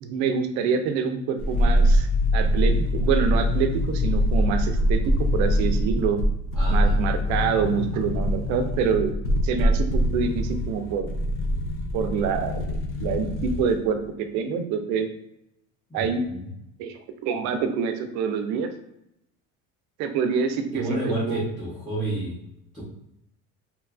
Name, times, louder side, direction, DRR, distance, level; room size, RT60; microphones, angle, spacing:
voice 1, 0.0-2.1 2.3-6.2 6.7-9.1 9.4-11.1 11.9-15.1 15.9-16.2 16.8-18.7 20.0-21.4, right 6 dB, 65° right, 7 dB, 0.4 m, -26 dB
sound 1, 1.4-13.8 14.0-14.1, equal, 45° left, 0.4 m, -23 dB
voice 2, 6.5-7.0 15.9-16.5 20.7-22.4 22.7-22.8, right 1 dB, ahead, -9 dB, 0.7 m, -30 dB
2.9 x 2.4 x 2.3 m, 0.81 s
cardioid pair, 160°, 30 cm